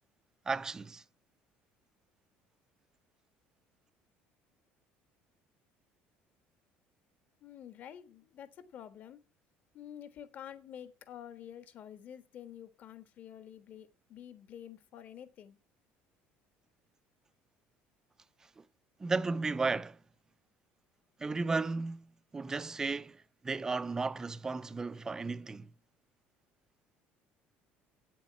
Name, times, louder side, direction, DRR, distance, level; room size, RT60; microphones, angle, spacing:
voice 1, 0.5-1.0 18.6-18.7 19.0-20.0 21.2-25.7, right 3 dB, 15° right, 0.4 m, -34 dB
voice 2, 7.4-9.2 9.7-15.6, left 10 dB, 45° left, 1.4 m, -49 dB
8.5 x 7.6 x 8.1 m
cardioid pair, 145°, 4 cm